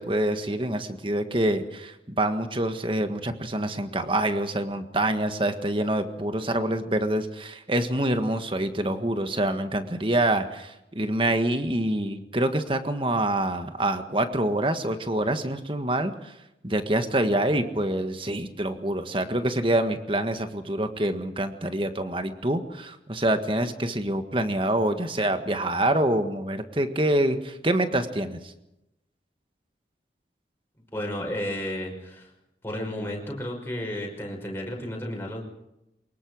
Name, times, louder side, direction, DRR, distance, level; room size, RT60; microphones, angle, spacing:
voice 1, 0.0-16.3 16.6-28.5, right 1 dB, 30° right, 8 dB, 1.6 m, -26 dB
voice 2, 30.9-32.3 32.6-35.4, left 1 dB, 15° left, 0 dB, 5.7 m, -32 dB
24.0 x 21.5 x 6.3 m, 0.90 s
head